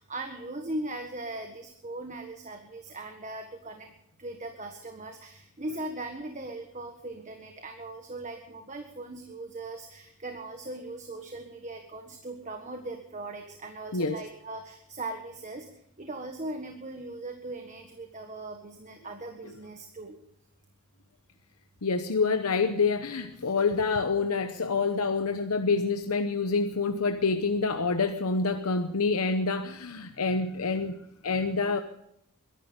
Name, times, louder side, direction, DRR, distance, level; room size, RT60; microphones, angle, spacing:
voice 1, 0.0-3.9 4.2-15.7 16.0-20.2, right 2 dB, 35° right, 4 dB, 1.5 m, -39 dB
voice 2, 21.8-31.0 31.2-31.8, left 4 dB, 90° left, 7 dB, 0.9 m, -27 dB
22.5 x 11.5 x 5.2 m, 0.77 s
head